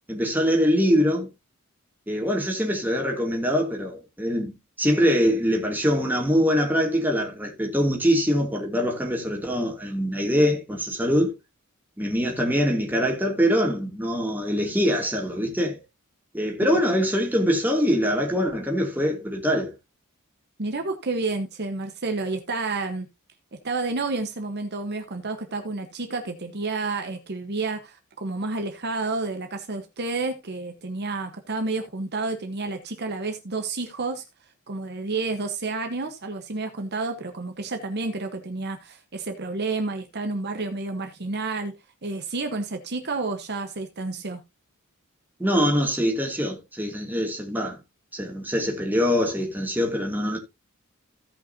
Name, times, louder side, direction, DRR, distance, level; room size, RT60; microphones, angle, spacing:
voice 1, 0.1-1.3 2.1-11.3 12.0-15.8 16.3-19.7 45.4-47.8 48.1-50.4, equal, 10° right, 2.5 m, -23 dB
voice 2, 20.6-23.1 23.5-34.2 34.7-41.7 42.0-44.4, right 3 dB, 50° right, 1.1 m, -30 dB
16.5 x 5.8 x 2.7 m
head